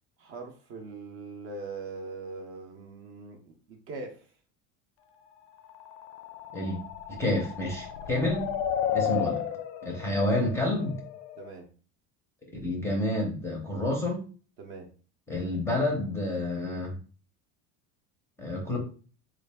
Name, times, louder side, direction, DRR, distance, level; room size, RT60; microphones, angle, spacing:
voice 1, 0.2-4.3 9.0-9.3 11.4-11.7 14.6-14.9, right 3 dB, 35° right, 3 dB, 0.6 m, -41 dB
sound 1, 5.7-11.5, left 9 dB, 80° left, 0.5 m, -33 dB
voice 2, 7.1-8.5 8.9-9.4 9.8-11.0 12.6-14.2 15.3-16.9 18.4-18.8, left 1 dB, 5° left, 0 dB, 0.6 m, -29 dB
3.8 x 2.4 x 3.4 m, 0.38 s
cardioid pair, 175°, 37 cm